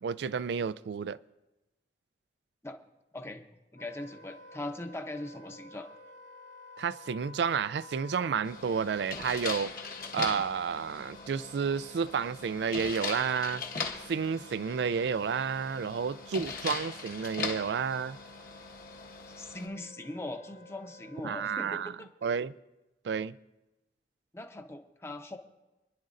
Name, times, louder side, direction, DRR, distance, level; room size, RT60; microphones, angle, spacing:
voice 1, 0.0-1.2 6.8-9.7 10.1-13.6 14.1-18.2 21.2-21.9 22.2-22.5 23.0-23.3, right 6 dB, 75° right, 0.3 m, -31 dB
voice 2, 3.1-3.4 3.7-5.9 19.4-22.1 24.3-25.4, left 1 dB, 15° left, 0.8 m, -40 dB
Wind instrument woodwind instrument, 3.7-22.0, left 2 dB, 80° left, 2.8 m, -52 dB
sound 1, 8.4-19.7, left 5 dB, 55° left, 1.4 m, -40 dB
27.5 x 11.0 x 2.6 m
head